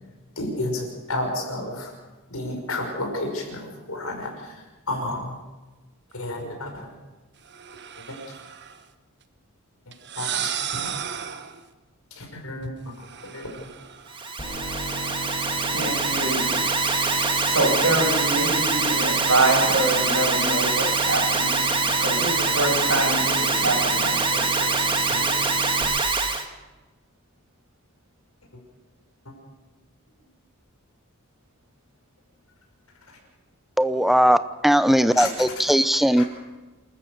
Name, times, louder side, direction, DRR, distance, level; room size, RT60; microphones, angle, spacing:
voice 1, 0.4-1.9 2.3-4.6 4.9-5.3 6.1-6.9 8.0-8.2 10.2-11.1 12.2-12.9 13.2-13.7 24.3-24.5 25.1-25.4 29.2-29.3 33.1-33.2 35.1-35.3 36.2-36.3, left 2 dB, 85° left, 2 dB, 6.1 m, -32 dB
sound 1, 7.5-8.8 9.9-11.6 13.0-14.3, right 9 dB, 55° right, 1.3 m, -34 dB
Alarm, 14.1-26.5, right 4 dB, 25° right, 1.7 m, -24 dB
sound 2, 14.4-25.8, right 1 dB, 25° left, 6.0 m, -35 dB
voice 2, 15.7-16.6 17.5-21.6 22.0-24.8, right 2 dB, 90° right, 1 dB, 6.7 m, -25 dB
voice 3, 33.8-34.4 34.6-36.2, equal, ahead, 13 dB, 0.7 m, -18 dB
28.0 x 14.0 x 6.8 m, 1.2 s
head